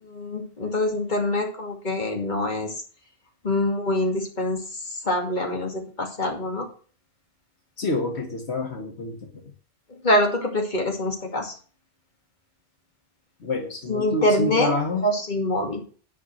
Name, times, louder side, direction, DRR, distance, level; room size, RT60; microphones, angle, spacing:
voice 1, 0.0-2.7 3.4-4.6 5.0-6.7 9.9-11.5 13.9-14.7 15.0-15.8, left 1 dB, 45° left, 1 dB, 2.6 m, -25 dB
voice 2, 7.8-9.3 13.4-15.0, left 2 dB, 85° left, 3 dB, 1.9 m, -28 dB
10.5 x 5.7 x 6.4 m, 0.41 s
omnidirectional pair, 1.1 m